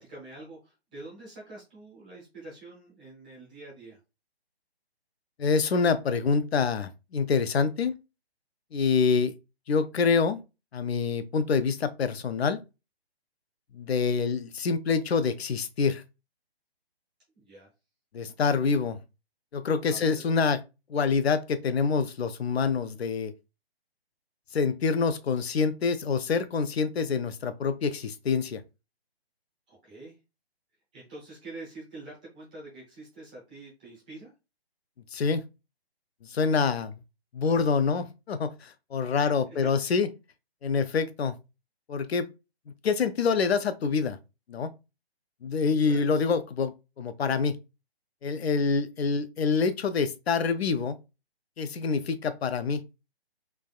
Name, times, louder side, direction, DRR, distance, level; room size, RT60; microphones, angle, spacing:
voice 1, 0.0-4.0 17.4-17.7 19.8-20.4 29.7-30.2 30.9-34.3 39.2-39.9 45.8-46.1, right 2 dB, 10° right, 0.5 m, -46 dB
voice 2, 5.4-7.9 8.7-9.3 9.7-10.4 10.7-12.6 13.7-16.0 18.1-19.0 19.5-20.6 20.9-23.3 24.5-28.6 35.1-35.4 36.3-36.9 37.3-40.1 40.6-41.4 41.9-42.3 42.8-44.2 44.5-44.7 45.4-47.6 48.2-51.0 51.6-52.8, left 5 dB, 70° left, 0.5 m, -26 dB
3.4 x 2.3 x 2.3 m
figure-of-eight pair, 145°, 32 cm